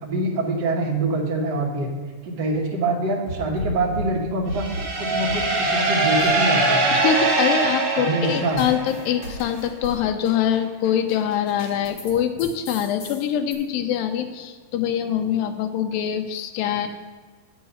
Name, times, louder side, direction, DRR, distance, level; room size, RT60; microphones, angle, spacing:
voice 1, 0.0-1.9 2.2-4.7 5.0-7.0 8.0-8.6, right 2 dB, 75° right, -2 dB, 1.0 m, -25 dB
sound 1, 3.3-4.9 5.3-6.7 7.0-12.1 12.4-13.5, left 1 dB, 50° left, 2.6 m, -36 dB
sound 2, 4.5-9.2, right 3 dB, 55° right, 2.5 m, -22 dB
voice 2, 6.9-16.9, left 9 dB, 80° left, 7 dB, 2.3 m, -24 dB
9.3 x 5.5 x 5.6 m, 1.5 s
omnidirectional pair, 4.0 m